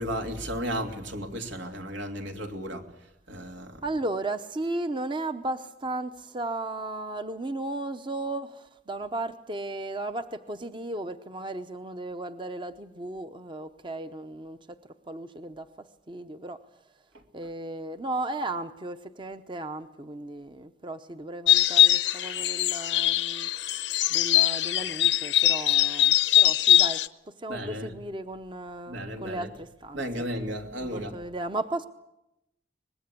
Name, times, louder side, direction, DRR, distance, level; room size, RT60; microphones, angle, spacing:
voice 1, 0.0-2.9 3.3-3.8 17.1-17.2 27.5-27.9 28.9-29.5 29.9-31.2, equal, 85° right, 2.9 m, -34 dB
voice 2, 3.8-14.8 15.1-15.7 16.1-16.6 17.3-23.5 24.1-30.0 30.8-31.9, right 2 dB, 25° right, 0.8 m, -35 dB
sound 1, 21.5-27.1, left 13 dB, 80° left, 0.8 m, -22 dB
24.0 x 20.5 x 8.4 m
head